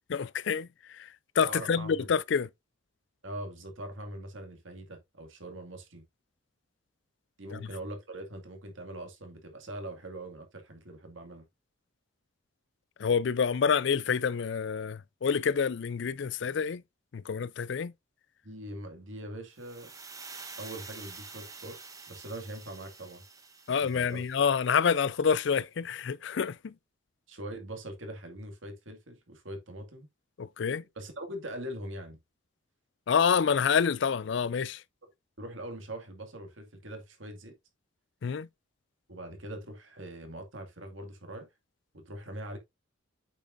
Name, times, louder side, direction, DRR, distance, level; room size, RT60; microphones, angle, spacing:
voice 1, 0.1-2.5 7.5-7.7 13.0-16.8 17.1-17.9 23.7-26.7 30.4-30.8 33.1-34.8 38.2-38.5, left 6 dB, 60° left, 0.4 m, -28 dB
voice 2, 1.5-1.9 3.2-6.0 7.4-11.4 18.4-19.9 20.6-21.8 22.1-23.2 23.8-24.2 27.3-30.1 31.0-32.2 35.4-37.5 39.1-41.5 41.9-42.6, right 1 dB, 70° right, 2.2 m, -42 dB
sound 1, 19.6-24.6, right 4 dB, 15° right, 1.0 m, -47 dB
8.4 x 6.2 x 2.6 m
head